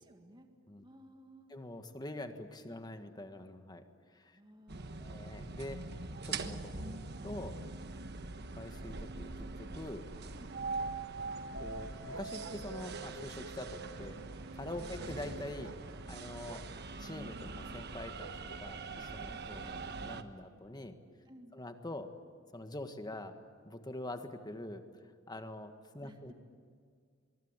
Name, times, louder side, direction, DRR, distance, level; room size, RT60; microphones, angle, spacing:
voice 1, 0.0-0.5 0.8-1.5 4.4-5.3 7.9-8.1 10.3-10.5 14.8-15.0 19.2-19.4 21.2-21.6 26.0-26.3, equal, 25° right, 5 dB, 1.8 m, -57 dB
voice 2, 1.5-3.8 4.1-4.4 5.0-5.8 6.2-7.6 8.5-9.3 9.6-10.1 11.6-14.2 14.5-15.7 16.0-16.7 17.0-18.3 18.6-21.0 21.5-22.1 22.5-23.4 23.6-24.8 25.3-26.3, left 1 dB, 20° left, 7 dB, 1.6 m, -45 dB
sound 1, 4.7-20.2, right 3 dB, 55° right, 1.3 m, -43 dB
sound 2, 10.1-18.6, right 3 dB, 80° right, 1.2 m, -53 dB
24.0 x 23.0 x 9.0 m, 2.1 s
head